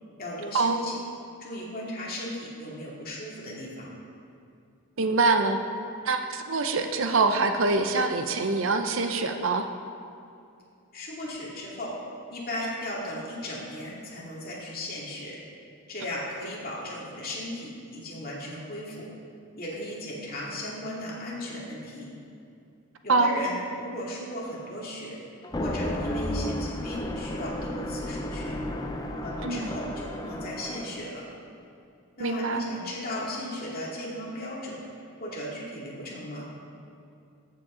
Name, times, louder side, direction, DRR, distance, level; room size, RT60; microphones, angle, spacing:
voice 1, 0.2-1.0 1.4-3.9 10.9-12.0 12.3-15.4 15.9-19.1 19.6-22.1 23.0-25.2 25.6-28.6 29.2-31.2 32.2-34.8 35.2-36.5, left 1 dB, 40° left, -5 dB, 2.4 m, -36 dB
voice 2, 5.0-5.6 6.0-9.7 23.1-23.4 29.4-29.7 32.2-32.8, right 3 dB, 60° right, 6 dB, 0.6 m, -24 dB
sound 1, 25.4-31.1, left 1 dB, 20° left, 0.5 m, -33 dB
14.0 x 7.6 x 3.8 m, 2.5 s
head